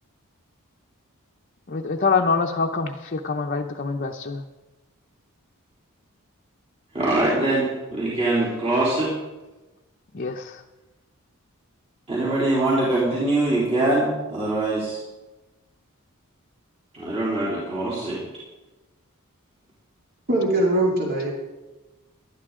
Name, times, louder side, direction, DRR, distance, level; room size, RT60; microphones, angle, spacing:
voice 1, 1.7-4.4 10.1-10.6, left 4 dB, 40° left, 1 dB, 0.7 m, -25 dB
voice 2, 6.9-9.1 12.1-15.0 16.9-18.2, right 2 dB, 30° right, -8 dB, 3.7 m, -23 dB
voice 3, 20.3-21.3, right 1 dB, 45° right, -2 dB, 2.5 m, -21 dB
18.5 x 12.0 x 3.8 m, 1.1 s
head